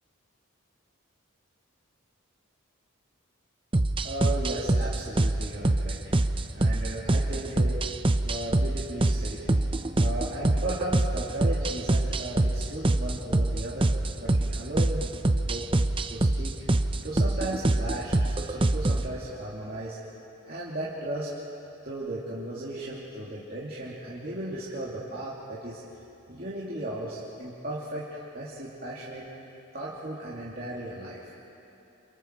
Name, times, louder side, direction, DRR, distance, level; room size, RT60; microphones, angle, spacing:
sound 1, 3.7-19.1, right 2 dB, 25° right, 0.6 m, -25 dB
voice 1, 4.0-6.0 6.5-7.8 8.2-9.5 10.0-13.9 14.2-15.0 15.4-15.7 16.1-16.5 17.0-20.0 20.4-21.3 21.8-25.8 26.3-28.1 28.3-29.2 29.7-31.3, right 1 dB, 45° right, -7 dB, 2.7 m, -35 dB
29.5 x 27.5 x 4.6 m, 3.0 s
head